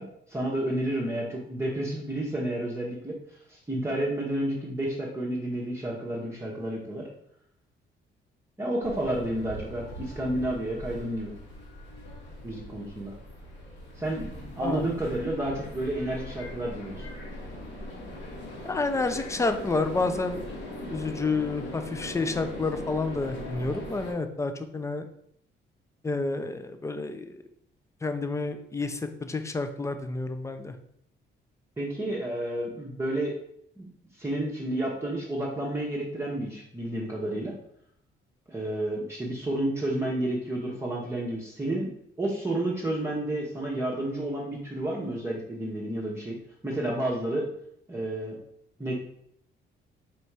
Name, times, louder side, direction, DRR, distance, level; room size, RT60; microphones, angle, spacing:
voice 1, 0.0-3.2 3.5-7.1 8.6-11.3 12.4-13.1 14.0-14.3 14.6-17.1 31.8-33.3 33.8-33.9 34.1-37.5 38.5-41.9 42.2-46.4 46.6-47.5 47.9-48.4 48.8-48.9, right 1 dB, 10° right, -4 dB, 1.0 m, -30 dB
sound 1, 8.8-24.1, left 1 dB, 65° left, 1.5 m, -40 dB
voice 2, 18.6-20.4 20.9-25.1 26.0-27.4 28.0-30.7, left 3 dB, 15° left, 8 dB, 0.5 m, -29 dB
4.4 x 2.6 x 4.6 m, 0.71 s
cardioid pair, 90°, 20 cm